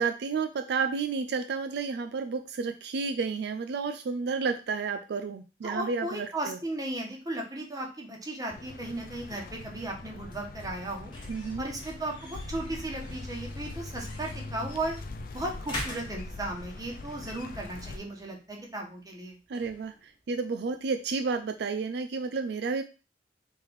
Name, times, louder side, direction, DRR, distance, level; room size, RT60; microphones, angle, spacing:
voice 1, 0.0-6.6 11.3-11.7 19.5-22.8, right 5 dB, 65° right, 7 dB, 0.4 m, -31 dB
voice 2, 5.6-11.1 11.6-14.9 15.3-19.4, right 1 dB, 20° right, 0 dB, 1.1 m, -36 dB
sound 1, 8.5-18.0, left 2 dB, 55° left, 0.5 m, -42 dB
sound 2, 8.9-21.6, left 1 dB, 25° left, 1.3 m, -47 dB
3.5 x 3.2 x 4.6 m, 0.32 s
head